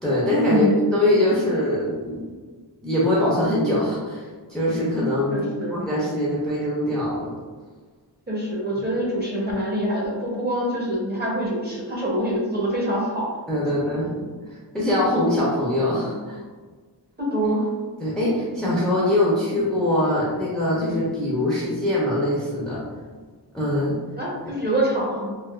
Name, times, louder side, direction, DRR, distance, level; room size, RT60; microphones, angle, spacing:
voice 1, 0.0-0.7 0.9-2.2 2.8-7.3 13.5-14.2 14.7-16.4 18.0-22.8 23.5-24.0, left 1 dB, ahead, -7 dB, 0.6 m, -23 dB
voice 2, 5.3-5.8 8.3-13.3 17.2-17.7 24.2-25.4, equal, 25° right, -5 dB, 0.9 m, -25 dB
3.5 x 2.4 x 2.4 m, 1.5 s
wide cardioid pair, 105°, 41 cm